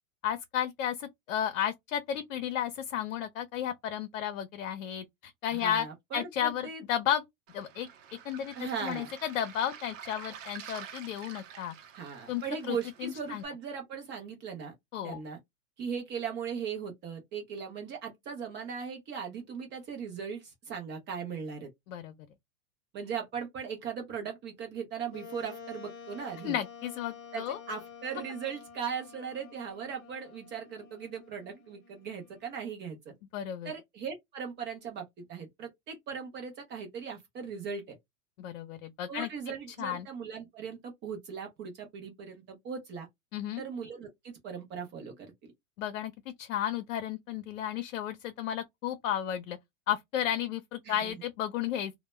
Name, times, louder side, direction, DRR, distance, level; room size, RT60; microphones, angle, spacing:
voice 1, 0.2-5.9 6.1-7.2 7.5-7.9 8.2-11.7 12.3-13.4 14.9-15.2 21.9-22.1 26.4-27.6 33.3-33.7 38.4-39.3 39.8-40.1 43.3-43.6 45.8-46.1 46.4-49.6 49.9-52.0, left 10 dB, 85° left, 0.5 m, -33 dB
voice 2, 5.5-6.8 8.6-9.1 11.9-14.7 15.0-15.4 15.8-21.7 22.9-26.6 27.3-33.1 33.6-38.0 39.1-43.1 43.6-45.5 50.8-51.2, right 6 dB, 30° right, 0.6 m, -38 dB
Waves surf, 7.5-13.5, right 8 dB, 70° right, 0.8 m, -48 dB
Wind instrument woodwind instrument, 25.1-32.5, left 6 dB, 30° left, 0.7 m, -49 dB
2.1 x 2.0 x 3.0 m
hypercardioid pair, 120°, 40 cm